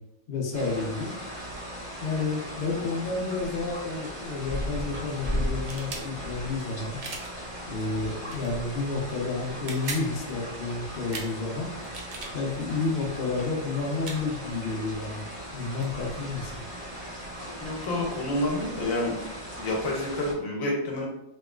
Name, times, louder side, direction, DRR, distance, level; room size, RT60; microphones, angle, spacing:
voice 1, 0.3-1.1 2.0-7.0 7.7-11.7 12.3-15.2 15.5-16.6, left 3 dB, 55° left, -1 dB, 0.6 m, -30 dB
sound 1, 0.5-20.3, equal, 40° right, 1.3 m, -37 dB
sound 2, 5.6-6.1 7.0-7.3 8.3-8.5 9.5-10.1 11.1-11.3 11.8-12.3 13.3-13.4 14.0-14.2 15.6-15.7 15.8-17.1, right 3 dB, 75° right, 0.4 m, -38 dB
voice 2, 17.4-19.2 19.6-21.1, left 1 dB, 80° left, -1 dB, 1.2 m, -29 dB
3.0 x 3.0 x 2.3 m, 0.84 s
omnidirectional pair, 1.4 m